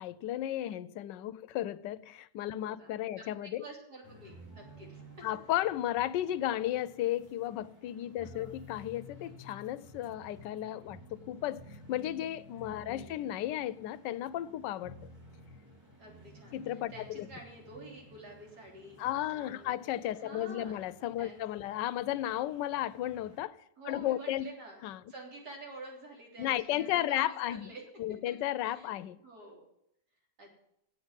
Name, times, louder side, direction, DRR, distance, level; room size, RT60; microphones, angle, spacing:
voice 1, 0.0-3.6 5.2-14.9 16.5-17.3 19.0-23.6 23.9-24.5 24.8-25.0 26.4-27.7 28.0-29.2, left 13 dB, 90° left, 1.2 m, -34 dB
voice 2, 2.6-2.9 3.4-5.3 8.2-8.5 12.8-13.2 16.0-19.0 19.3-19.8 20.1-20.8 21.2-21.7 23.8-24.8 25.1-28.2 28.7-29.6 30.4-30.6, right 2 dB, 65° right, 4.0 m, -49 dB
sound 1, 4.0-23.4, equal, 10° right, 2.4 m, -54 dB
8.5 x 8.0 x 9.0 m
omnidirectional pair, 1.8 m